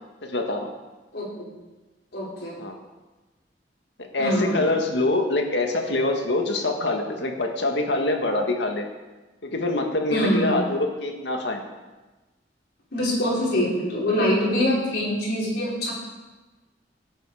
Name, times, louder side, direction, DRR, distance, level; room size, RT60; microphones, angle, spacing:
voice 1, 0.2-0.7 2.6-2.8 4.0-8.8 9.4-11.6, left 2 dB, 80° left, 3 dB, 1.9 m, -25 dB
voice 2, 2.1-2.5 4.2-4.7 10.1-10.5 12.9-15.9, left 1 dB, 65° left, -5 dB, 5.4 m, -24 dB
17.5 x 9.2 x 5.0 m, 1.2 s
head